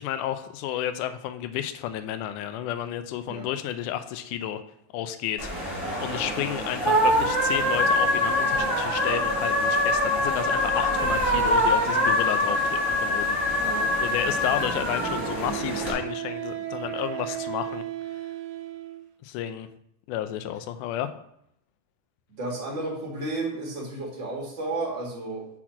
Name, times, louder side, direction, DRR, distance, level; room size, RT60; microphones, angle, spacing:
voice 1, 0.0-4.6 4.9-5.7 6.0-13.6 14.0-17.8 18.1-18.2 19.2-19.7 20.1-21.1, left 11 dB, 80° left, 9 dB, 1.9 m, -31 dB
sound 1, 5.4-15.9, left 1 dB, 25° left, 1.8 m, -24 dB
voice 2, 13.6-13.9 22.4-25.5, right 2 dB, 40° right, -2 dB, 2.1 m, -32 dB
Wind instrument woodwind instrument, 15.0-19.1, right 13 dB, 85° right, 1.7 m, -35 dB
6.1 x 4.1 x 5.7 m, 0.75 s
omnidirectional pair, 3.9 m